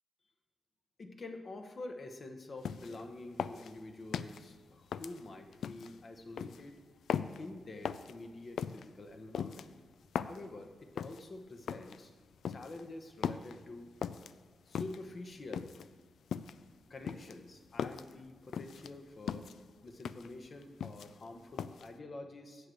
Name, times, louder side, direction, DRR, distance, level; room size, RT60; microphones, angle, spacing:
voice 1, 1.0-6.8 7.4-9.8 10.2-12.1 12.5-14.0 14.7-15.7 16.9-19.5 19.8-22.7, left 2 dB, 50° left, 6 dB, 1.1 m, -47 dB
sound 1, 2.6-3.0 3.4-4.4 4.9-5.9 6.4-6.6 7.1-7.4 7.8-8.1 8.6-8.8 9.3-10.4 11.0-11.2 11.7-12.0 12.4-12.8 13.2-13.6 14.0-14.3 14.7-15.1 15.5-15.9 16.3-16.7 17.1-18.1 18.5-18.9 19.3-19.6 20.0-20.3 20.6-21.3 21.6-21.9, left 7 dB, 85° left, 0.3 m, -38 dB
8.3 x 6.2 x 7.8 m, 1.4 s
cardioid pair, 75°, 0 cm